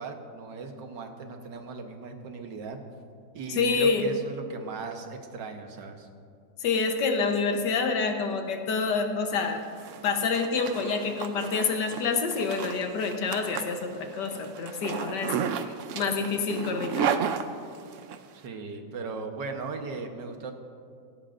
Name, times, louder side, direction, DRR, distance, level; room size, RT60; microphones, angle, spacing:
voice 1, 0.0-2.8 3.3-6.1 18.4-20.5, right 4 dB, 90° right, 4 dB, 1.8 m, -38 dB
voice 2, 3.5-4.1 6.6-9.6 10.0-17.1, left 4 dB, 80° left, 4 dB, 1.7 m, -27 dB
Zipper (clothing), 9.5-18.2, right 7 dB, 65° right, 0.8 m, -33 dB
17.0 x 16.5 x 2.6 m, 2.3 s
omnidirectional pair, 1.8 m